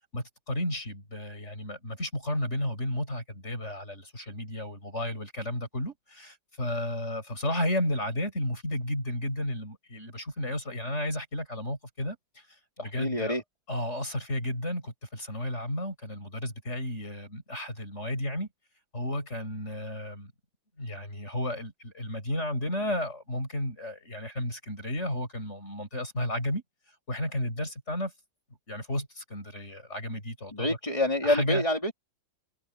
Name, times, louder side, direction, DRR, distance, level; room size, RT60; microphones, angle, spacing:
voice 1, 0.1-13.4 13.7-18.5 18.9-20.3 20.8-26.6 27.1-28.1 28.7-30.8 31.2-31.6, left 1 dB, 35° left, 7.6 m, -33 dB
voice 2, 12.8-13.4 30.5-31.9, left 1 dB, 15° left, 4.2 m, -27 dB
omnidirectional pair, 2.1 m